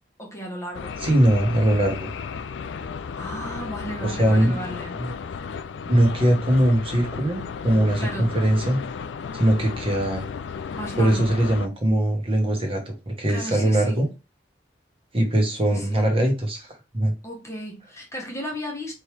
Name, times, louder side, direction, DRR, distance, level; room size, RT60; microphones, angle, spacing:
voice 1, 0.2-1.0 3.2-5.0 8.0-8.3 10.7-11.4 13.3-14.1 15.7-16.1 17.2-18.9, equal, 15° left, 1.0 m, -35 dB
sound 1, 0.7-11.7, left 6 dB, 80° left, 0.4 m, -34 dB
voice 2, 1.0-2.1 4.0-5.1 5.8-8.8 9.3-10.2 11.0-14.1 15.1-17.1, right 1 dB, 30° right, 1.1 m, -21 dB
4.4 x 3.2 x 3.3 m
head